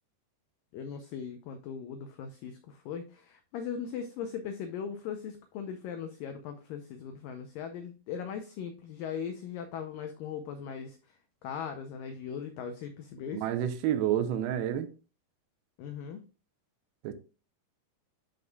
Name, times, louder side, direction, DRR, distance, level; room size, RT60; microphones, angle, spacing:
voice 1, 0.7-13.5 15.8-16.2, left 7 dB, 90° left, 1.9 m, -39 dB
voice 2, 13.3-14.9 17.0-17.1, right 10 dB, 80° right, 2.6 m, -29 dB
11.0 x 5.4 x 2.3 m
omnidirectional pair, 4.8 m